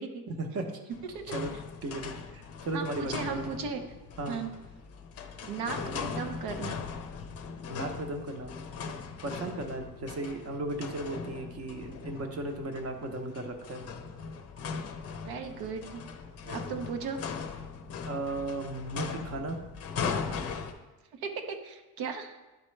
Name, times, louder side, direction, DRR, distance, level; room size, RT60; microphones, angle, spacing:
voice 1, 0.3-0.8 1.3-1.5 1.8-3.5 4.2-4.4 7.7-8.5 9.2-13.9 16.4-16.6 18.1-19.6, right 2 dB, 40° right, 5 dB, 0.9 m, -36 dB
sound 1, 0.9-20.7, left 5 dB, 40° left, 0.6 m, -39 dB
voice 2, 0.9-1.4 2.7-3.8 4.3-4.6 5.4-6.8 15.2-16.1 16.5-17.2 21.1-22.3, right 5 dB, 75° right, 6 dB, 0.9 m, -36 dB
11.0 x 4.3 x 3.2 m, 1.1 s
cardioid pair, 155°, 38 cm